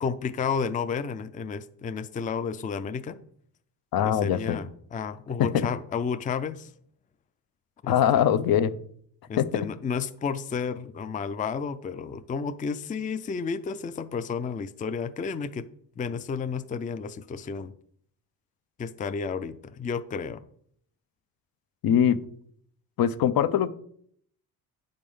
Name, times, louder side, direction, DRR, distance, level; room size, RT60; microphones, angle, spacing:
voice 1, 0.0-3.2 4.0-6.7 7.8-8.3 9.3-15.7 16.0-17.7 18.8-20.4, left 6 dB, 20° left, 0.4 m, -32 dB
voice 2, 3.9-4.6 5.4-5.7 7.9-8.7 9.4-9.7 21.8-22.2 23.0-23.7, left 9 dB, 65° left, 0.8 m, -22 dB
9.7 x 5.3 x 5.4 m
cardioid pair, 115°, 38 cm